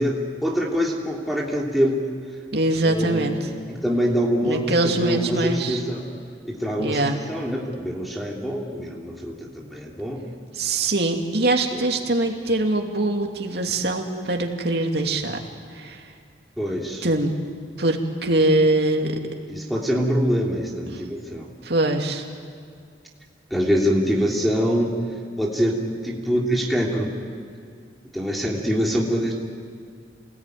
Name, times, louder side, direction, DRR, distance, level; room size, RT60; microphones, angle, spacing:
voice 1, 0.0-2.0 2.8-6.1 6.4-10.2 11.7-11.8 16.6-17.1 19.5-21.5 23.5-25.0 25.4-27.1 28.1-29.3, equal, ahead, -3 dB, 3.0 m, -24 dB
voice 2, 2.5-3.4 4.4-5.8 6.8-7.2 10.5-15.4 15.7-16.0 17.0-17.3 17.8-19.2 20.9-21.0 21.6-22.2, right 2 dB, 65° right, 2 dB, 2.6 m, -22 dB
28.5 x 20.0 x 9.3 m, 2.2 s
head